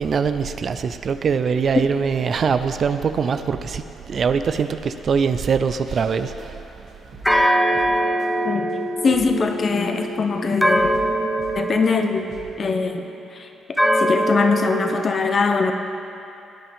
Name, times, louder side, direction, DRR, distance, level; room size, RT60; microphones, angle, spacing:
voice 1, 0.0-6.6, right 6 dB, 50° right, 10 dB, 0.5 m, -22 dB
sound 1, 3.2-12.7, right 2 dB, 80° right, 2.5 m, -44 dB
sound 2, 7.2-13.0 13.8-15.0, right 1 dB, 5° left, 0.6 m, -22 dB
voice 2, 9.0-11.0 11.5-12.3 12.6-13.1 13.3-13.5 14.0-15.7, left 4 dB, 45° left, 5 dB, 0.9 m, -21 dB
17.0 x 8.6 x 3.6 m, 2.8 s
cardioid pair, 90°, 0 cm